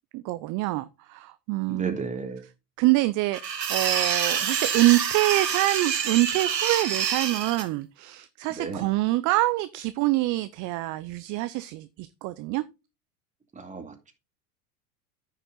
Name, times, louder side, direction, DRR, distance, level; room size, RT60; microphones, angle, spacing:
voice 1, 0.1-2.0 2.8-3.4 3.7-12.6, right 19 dB, 40° right, 0.6 m, -25 dB
voice 2, 1.7-2.4 8.5-8.8 13.6-14.1, right 4 dB, 15° right, 2.4 m, -34 dB
sound 1, 3.3-7.6, right 7 dB, 85° right, 1.8 m, -27 dB
9.8 x 6.7 x 3.9 m
hypercardioid pair, 95°, 48 cm